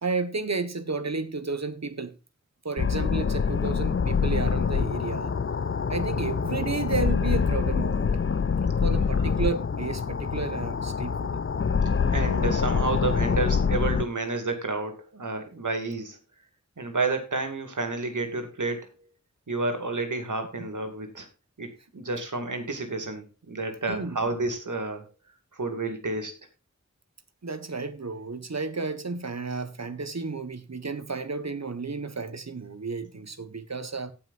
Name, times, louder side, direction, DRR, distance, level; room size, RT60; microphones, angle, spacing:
voice 1, 0.0-2.2 2.6-5.4 5.9-8.1 8.8-11.4 20.6-20.7 23.9-24.3 27.4-34.1, right 4 dB, 60° right, 1.4 m, -32 dB
sound 1, 2.8-14.0, left 5 dB, 45° left, 0.6 m, -25 dB
voice 2, 12.1-16.2 16.8-18.9 19.5-21.3 21.6-25.1 25.5-26.3, right 3 dB, 80° right, 2.5 m, -30 dB
17.5 x 6.1 x 2.6 m
wide cardioid pair, 50°, 30 cm